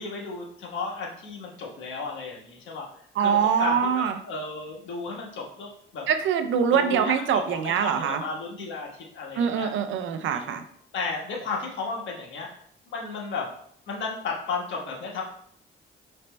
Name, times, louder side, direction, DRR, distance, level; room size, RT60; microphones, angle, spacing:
voice 1, 0.0-2.9 3.2-6.1 6.7-8.9 9.1-9.7 10.3-10.6 10.9-12.5 12.9-13.5 13.9-15.2, left 4 dB, 70° left, -1 dB, 1.3 m, -33 dB
voice 2, 3.2-4.1 6.1-8.2 9.4-10.6, right 7 dB, 75° right, 9 dB, 0.5 m, -24 dB
5.0 x 4.3 x 2.2 m, 0.64 s
cardioid pair, 90°, 20 cm